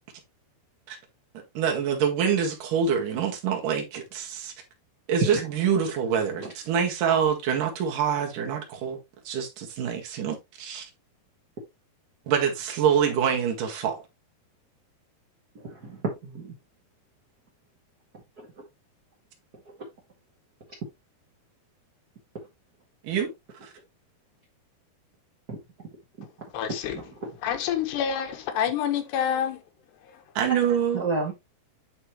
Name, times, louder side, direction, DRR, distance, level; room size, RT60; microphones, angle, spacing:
voice 1, 1.5-4.5 5.1-9.0 9.2-10.9 12.3-14.0 23.0-23.3 23.6-23.7 30.3-31.0, right 7 dB, 60° right, 3.3 m, -26 dB
voice 2, 15.6-16.5 25.5-25.6 26.7-27.3 30.9-31.3, right 3 dB, 35° right, 1.5 m, -31 dB
voice 3, 26.5-27.0 27.4-29.6, left 9 dB, 90° left, 3.4 m, -27 dB
11.0 x 4.5 x 3.1 m
omnidirectional pair, 4.7 m